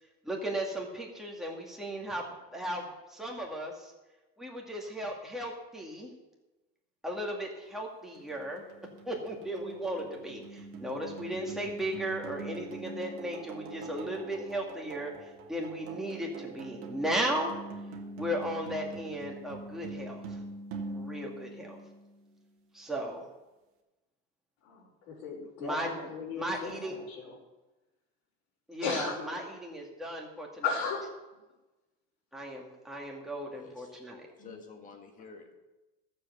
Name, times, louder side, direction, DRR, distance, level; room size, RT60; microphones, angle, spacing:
voice 1, 0.2-3.9 4.4-6.1 7.0-8.6 9.1-17.5 18.2-20.4 20.9-21.8 22.7-23.2 25.6-25.9 26.3-26.9 28.7-30.6 32.3-34.2, right 1 dB, ahead, -1 dB, 2.2 m, -36 dB
sound 1, 8.2-22.3, right 3 dB, 45° right, 1.9 m, -44 dB
voice 2, 24.6-27.4 28.8-29.5 30.6-31.2 34.4-34.6, left 4 dB, 65° left, -5 dB, 4.3 m, -36 dB
voice 3, 33.5-33.9 34.4-35.5, left 4 dB, 25° left, 4 dB, 1.8 m, -50 dB
13.5 x 7.6 x 6.8 m, 1.1 s
supercardioid pair, 150°, 32 cm